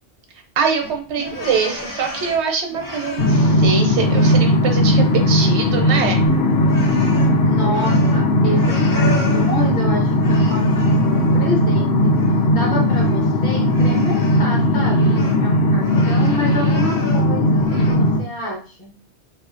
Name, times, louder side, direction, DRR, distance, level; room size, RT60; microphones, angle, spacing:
voice 1, 0.6-6.2, right 6 dB, 80° right, 3 dB, 0.9 m, -23 dB
sound 1, 0.8-3.7 4.0-5.4 5.6-9.7 10.2-11.6 12.0-15.4 15.8-17.3 17.5-18.0, left 2 dB, 30° left, 0.4 m, -34 dB
sound 2, 3.2-18.2, left 1 dB, 70° left, 0.8 m, -17 dB
Bass guitar, 6.3-12.5, equal, 50° right, 0.4 m, -33 dB
voice 2, 7.3-12.1 12.5-18.9, equal, 50° left, -1 dB, 1.1 m, -28 dB
2.9 x 2.7 x 2.4 m, 0.38 s
omnidirectional pair, 1.1 m